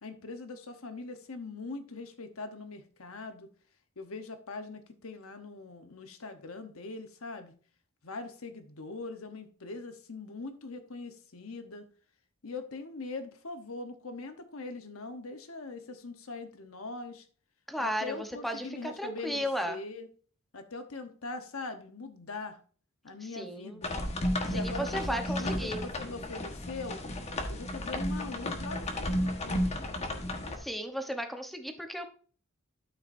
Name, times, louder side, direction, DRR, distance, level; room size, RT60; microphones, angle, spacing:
voice 1, 0.0-3.5 4.0-7.5 8.0-11.9 12.4-17.3 17.8-20.1 20.5-22.6 23.0-23.9 24.5-27.0 27.5-29.8, left 3 dB, 75° left, 7 dB, 1.1 m, -42 dB
voice 2, 17.7-19.8 23.2-23.8 24.4-25.8 30.6-32.1, equal, ahead, 5 dB, 1.0 m, -35 dB
sound 1, 23.8-30.6, left 1 dB, 30° left, 1.4 m, -33 dB
12.5 x 5.8 x 2.7 m, 0.42 s
head